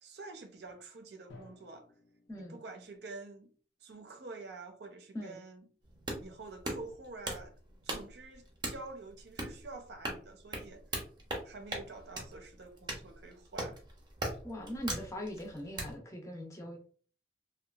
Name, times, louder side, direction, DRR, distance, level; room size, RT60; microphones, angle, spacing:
voice 1, 0.0-1.9 2.4-3.5 3.8-5.7 6.2-7.5 7.8-11.0 11.4-13.8, right 3 dB, 65° right, 0.5 m, -48 dB
Drum, 1.3-3.2, left 2 dB, 80° left, 0.6 m, -58 dB
sound 1, 5.8-15.9, right 1 dB, 25° right, 0.6 m, -41 dB
voice 2, 14.4-16.9, equal, 15° left, 0.5 m, -41 dB
2.8 x 2.2 x 2.3 m
head